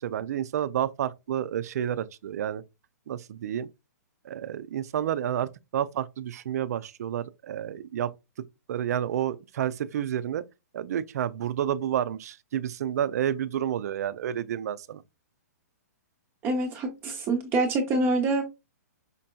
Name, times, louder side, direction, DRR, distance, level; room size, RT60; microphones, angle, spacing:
voice 1, 0.0-2.6 3.1-3.7 4.2-8.1 8.7-10.4 10.7-15.0, right 10 dB, 65° right, 0.4 m, -30 dB
voice 2, 16.4-18.4, right 2 dB, 20° right, 0.6 m, -26 dB
5.1 x 2.7 x 2.2 m
hypercardioid pair, 140°, 9 cm